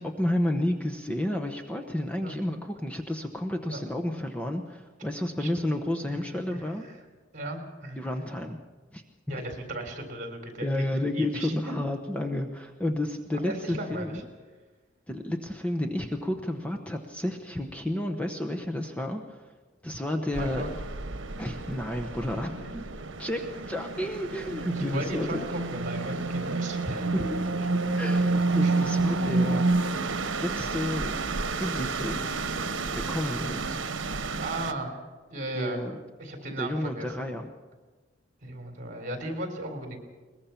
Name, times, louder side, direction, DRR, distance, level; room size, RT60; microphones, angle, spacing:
voice 1, 0.0-6.9 8.0-8.6 8.9-9.0 10.6-14.2 15.1-19.5 19.8-20.6 21.4-22.6 23.2-25.4 27.1-27.5 27.8-29.7 29.9-30.0 30.4-31.1 31.6-32.3 32.9-33.8 35.5-36.0 36.6-37.5, left 1 dB, 5° left, 3 dB, 1.0 m, -31 dB
voice 2, 7.3-8.0 9.3-10.7 11.1-11.8 13.4-14.1 20.3-20.7 22.5-22.7 24.7-27.3 28.6-28.7 34.4-35.0 35.3-35.8 36.2-37.1 38.4-40.0, right 1 dB, 45° right, 4 dB, 3.7 m, -36 dB
sound 1, 20.3-34.7, right 3 dB, 85° right, 1.0 m, -29 dB
22.0 x 20.5 x 5.9 m, 1.3 s
head